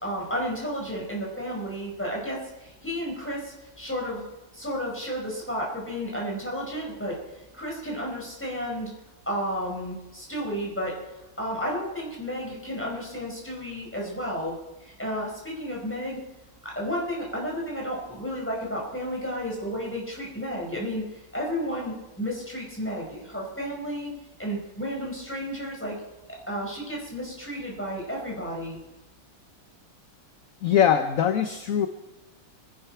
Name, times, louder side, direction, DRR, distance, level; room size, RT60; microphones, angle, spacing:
voice 1, 0.0-4.2 4.5-7.2 7.5-8.9 9.3-11.0 11.4-14.5 14.8-16.2 16.6-21.1 21.3-24.1 24.4-26.0 26.5-28.8, equal, 5° left, -2 dB, 4.7 m, -32 dB
voice 2, 30.6-31.9, left 9 dB, 55° left, 8 dB, 1.0 m, -22 dB
25.0 x 11.0 x 4.4 m, 1.0 s
omnidirectional pair, 2.1 m